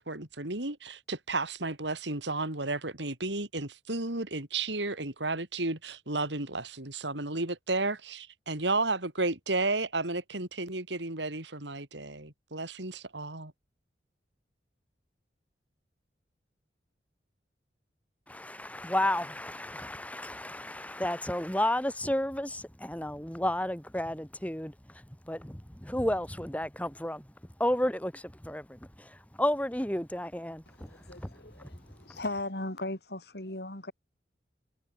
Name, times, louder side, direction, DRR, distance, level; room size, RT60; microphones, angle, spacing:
voice 1, 0.0-13.5, right 2 dB, 80° right, 3.8 m, -33 dB
voice 2, 18.3-27.3 27.6-32.2, left 1 dB, 10° left, 2.0 m, -32 dB
voice 3, 30.8-33.9, left 2 dB, 60° left, 4.3 m, -38 dB
head